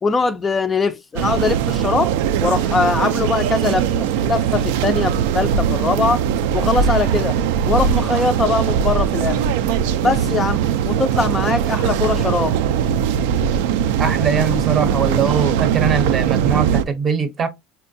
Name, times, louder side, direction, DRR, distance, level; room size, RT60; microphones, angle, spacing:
voice 1, 0.0-2.1 2.4-6.2 6.5-7.3 7.7-9.4 10.0-10.6 10.9-12.5, left 4 dB, 20° left, 0.3 m, -21 dB
sound 1, 1.2-16.8, right 8 dB, 85° right, 0.3 m, -20 dB
voice 2, 14.0-17.5, right 6 dB, 30° right, 0.6 m, -21 dB
4.4 x 2.1 x 2.6 m
supercardioid pair, 125°, 0 cm